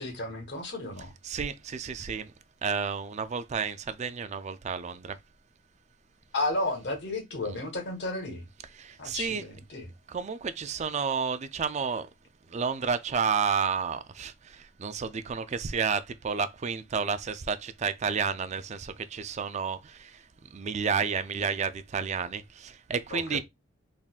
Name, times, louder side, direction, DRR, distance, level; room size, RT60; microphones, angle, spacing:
voice 1, 0.0-1.1 6.3-8.5 9.0-9.9 23.1-23.4, left 2 dB, 60° left, 1.4 m, -33 dB
voice 2, 1.2-2.3 2.6-5.2 7.5-7.6 8.7-9.5 10.1-12.1 12.5-23.4, right 6 dB, 35° right, 0.4 m, -31 dB
4.1 x 3.6 x 2.4 m
head